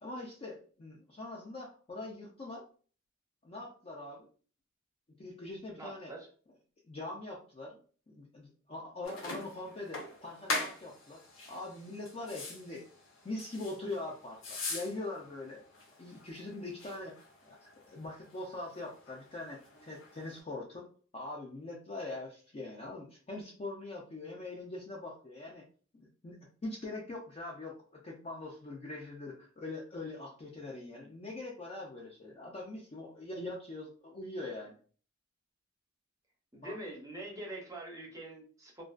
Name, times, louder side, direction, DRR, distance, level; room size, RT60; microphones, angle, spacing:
voice 1, 0.0-2.6 3.4-4.3 5.2-6.1 6.9-7.8 8.1-11.2 11.5-12.8 13.2-20.9 21.1-25.6 25.9-34.8 36.6-36.7, left 2 dB, 30° left, -3 dB, 0.4 m, -43 dB
voice 2, 5.8-6.3 36.5-38.8, right 1 dB, 15° right, -1 dB, 0.6 m, -44 dB
sound 1, 9.0-20.4, left 3 dB, 75° left, 0.8 m, -43 dB
2.4 x 2.2 x 2.3 m, 0.41 s
head